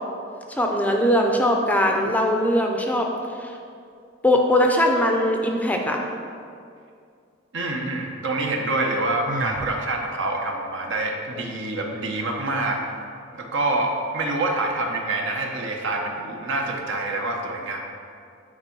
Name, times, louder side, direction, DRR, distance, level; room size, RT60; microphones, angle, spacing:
voice 1, 0.5-3.1 3.4-3.5 4.2-6.0, left 1 dB, 10° left, 1 dB, 0.5 m, -20 dB
voice 2, 7.5-12.9 13.3-17.8, right 2 dB, 65° right, 1 dB, 1.0 m, -26 dB
Sigh, 9.3-9.8, right 2 dB, 40° right, 0.4 m, -31 dB
9.6 x 4.8 x 4.6 m, 2.4 s
head